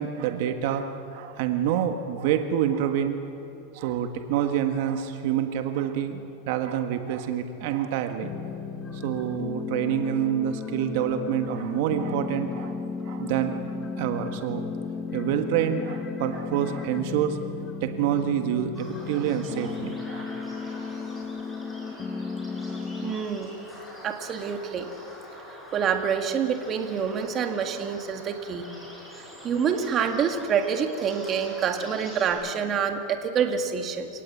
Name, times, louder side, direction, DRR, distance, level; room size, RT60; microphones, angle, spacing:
voice 1, 0.0-3.2 3.7-8.3 8.9-12.8 13.0-13.5 14.0-14.6 15.1-17.4 17.8-20.3, right 9 dB, 60° right, 7 dB, 1.6 m, -27 dB
sound 1, 8.2-23.1, left 4 dB, 25° left, 1.4 m, -34 dB
sound 2, 18.7-32.3, equal, 5° left, 6.8 m, -45 dB
voice 2, 23.0-23.5 24.0-24.9 25.7-28.7 29.2-34.1, right 7 dB, 30° right, 5 dB, 1.9 m, -27 dB
28.0 x 18.0 x 8.5 m, 2.9 s
supercardioid pair, 140°, 0 cm